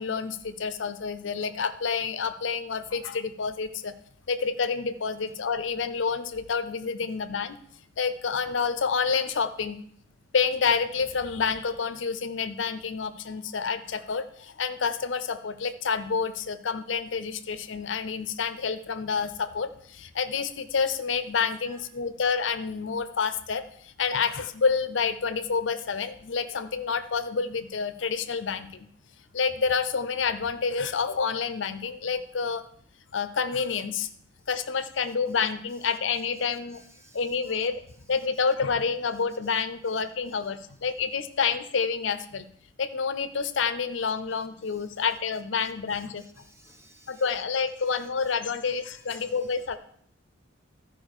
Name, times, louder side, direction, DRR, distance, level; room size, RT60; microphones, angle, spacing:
voice 1, 0.0-3.9 4.3-7.6 8.0-9.8 10.3-28.9 29.3-32.6 33.1-34.1 34.5-36.8 37.1-37.8 38.1-42.5 42.8-46.4 47.1-49.8, left 5 dB, 70° left, 11 dB, 0.6 m, -28 dB
voice 2, 36.7-37.2 44.9-45.0 45.6-47.2 49.1-49.3, right 1 dB, 15° right, 4 dB, 1.0 m, -55 dB
13.5 x 5.0 x 4.8 m, 0.63 s
head